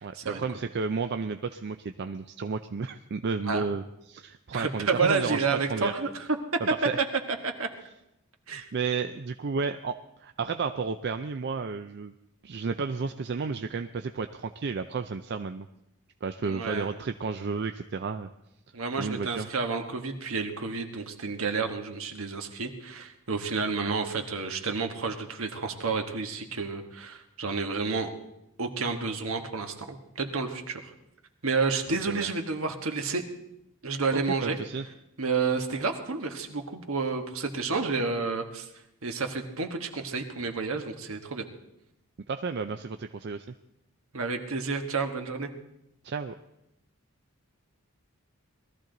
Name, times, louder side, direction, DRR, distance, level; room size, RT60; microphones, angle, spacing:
voice 1, 0.0-5.9 6.8-7.0 8.5-12.1 12.4-15.7 16.2-18.3 19.0-19.5 23.8-24.0 32.1-32.3 34.1-34.8 42.3-43.5 46.0-46.3, right 5 dB, 50° right, 8 dB, 0.4 m, -32 dB
voice 2, 4.5-6.2 7.4-7.7 8.5-8.7 16.4-16.9 18.7-28.1 28.6-30.9 31.4-33.2 33.8-34.6 35.2-38.7 39.0-41.4 44.1-45.5, right 4 dB, 70° right, 5 dB, 1.4 m, -30 dB
20.0 x 13.5 x 3.9 m, 0.85 s
head